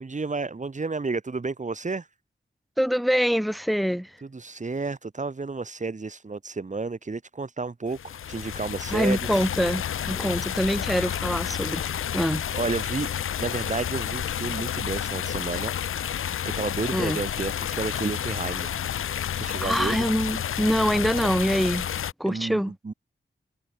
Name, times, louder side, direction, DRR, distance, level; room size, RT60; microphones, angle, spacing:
voice 1, 0.0-2.1 4.2-9.5 12.5-13.1 13.4-15.7 16.6-18.8 19.3-20.1 22.3-22.9, right 3 dB, 35° right, 0.9 m, -31 dB
voice 2, 2.8-4.1 8.9-12.4 16.9-17.2 19.6-21.9 22.2-22.7, equal, ahead, 0.5 m, -25 dB
sound 1, 7.9-22.1, left 9 dB, 85° left, 0.4 m, -30 dB
wide cardioid pair, 55°, 21 cm